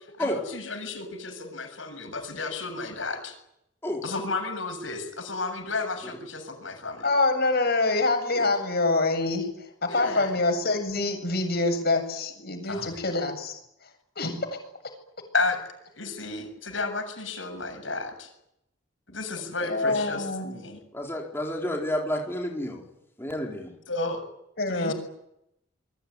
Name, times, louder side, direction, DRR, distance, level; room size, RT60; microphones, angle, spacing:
voice 1, 0.2-3.3 4.0-7.1 9.9-10.4 12.7-12.9 15.3-15.6 16.0-18.3 19.1-20.8 23.9-24.2 24.7-24.9, left 3 dB, 80° left, 6 dB, 7.3 m, -32 dB
voice 2, 7.0-9.5 9.8-13.6 14.2-14.5 19.6-20.5 24.6-24.9, left 2 dB, 55° left, 6 dB, 7.8 m, -25 dB
voice 3, 20.9-22.8 23.2-23.7, left 1 dB, 15° left, -1 dB, 4.3 m, -30 dB
27.0 x 22.5 x 9.8 m, 0.81 s
head